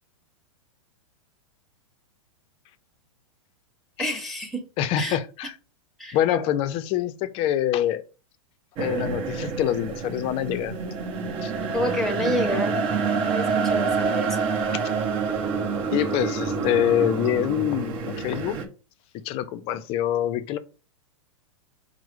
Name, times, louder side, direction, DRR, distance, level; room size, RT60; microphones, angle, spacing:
voice 1, 4.0-4.6 4.9-5.2 6.0-6.5 11.7-12.8 13.3-14.5, left 1 dB, ahead, 1.2 m, -29 dB
voice 2, 4.8-5.5 6.1-8.0 8.8-10.8 11.4-11.5 14.8-14.9 15.9-18.6 19.2-20.6, left 11 dB, 35° left, 0.4 m, -25 dB
sound 1, 8.8-18.7, right 5 dB, 35° right, 0.8 m, -27 dB
4.7 x 2.0 x 4.5 m
hypercardioid pair, 120°, 17 cm